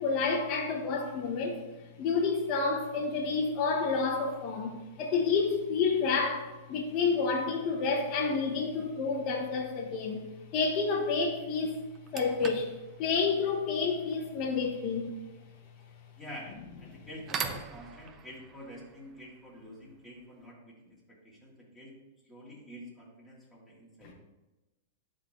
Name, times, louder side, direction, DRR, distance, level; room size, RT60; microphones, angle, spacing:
voice 1, 0.0-1.6 2.0-10.2 10.5-11.8 12.1-12.7 13.0-15.1, left 4 dB, 45° left, 0 dB, 1.1 m, -29 dB
sound 1, 8.8-9.1 11.1-11.2 11.7-20.5, right 6 dB, 30° right, 0.6 m, -44 dB
voice 2, 16.2-22.0 22.2-24.1, equal, 5° left, -6 dB, 2.6 m, -48 dB
11.5 x 3.9 x 3.1 m, 1.1 s
hypercardioid pair, 130°, 0 cm